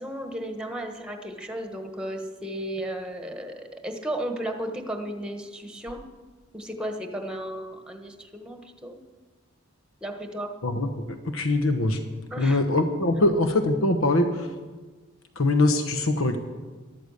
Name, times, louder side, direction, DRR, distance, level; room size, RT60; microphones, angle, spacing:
voice 1, 0.0-6.0 6.5-9.0 10.0-10.5 12.3-12.6, right 1 dB, 5° right, 5 dB, 1.4 m, -34 dB
voice 2, 10.6-12.0 12.4-14.5 15.4-16.4, left 2 dB, 85° left, 8 dB, 1.1 m, -23 dB
13.5 x 12.5 x 6.6 m, 1.3 s
head